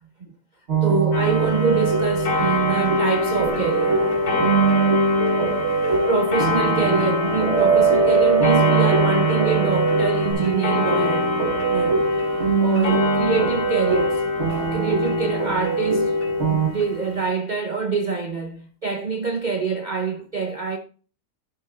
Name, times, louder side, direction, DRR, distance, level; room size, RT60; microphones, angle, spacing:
sound 1, 0.7-16.7, right 3 dB, 45° right, 1.6 m, -22 dB
voice 1, 0.8-4.1 6.0-11.4 11.7-12.0 12.6-14.3 14.6-16.2 16.5-20.8, right 5 dB, 70° right, 0.4 m, -25 dB
Clock, 1.1-17.2, left 2 dB, 85° left, 2.7 m, -28 dB
sound 2, 3.5-10.3, right 4 dB, 60° left, 2.4 m, -24 dB
11.0 x 7.8 x 2.5 m
omnidirectional pair, 1.8 m